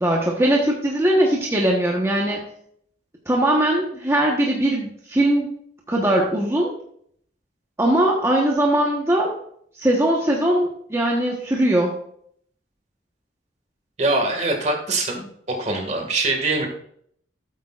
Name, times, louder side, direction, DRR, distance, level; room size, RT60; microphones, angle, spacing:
voice 1, 0.0-2.4 3.3-5.5 5.9-6.7 7.8-9.3 9.7-11.9, right 1 dB, 15° right, -2 dB, 1.2 m, -20 dB
voice 2, 14.0-16.7, right 2 dB, 40° right, 3 dB, 1.9 m, -23 dB
13.0 x 8.4 x 2.5 m, 0.66 s
head